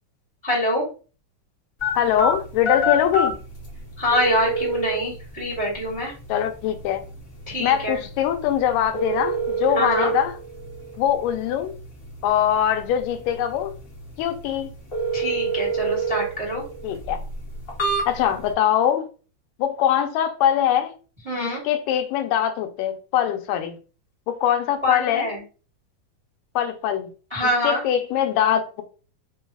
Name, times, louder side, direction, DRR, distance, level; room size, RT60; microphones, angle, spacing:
voice 1, 0.4-0.8 4.0-6.1 7.5-8.0 9.7-10.1 15.1-16.6 21.2-21.6 24.8-25.4 27.3-27.8, left 1 dB, 15° right, 0.9 m, -25 dB
sound 1, 1.8-18.5, right 2 dB, 40° left, 1.2 m, -29 dB
voice 2, 2.0-3.4 6.3-7.0 7.6-10.3 11.0-11.7 12.2-13.8 14.2-14.7 16.8-17.2 18.1-19.1 19.6-20.9 21.4-23.8 24.3-25.3 26.6-27.1 27.6-28.8, left 10 dB, 85° left, 2.2 m, -22 dB
5.2 x 2.3 x 3.4 m
omnidirectional pair, 3.8 m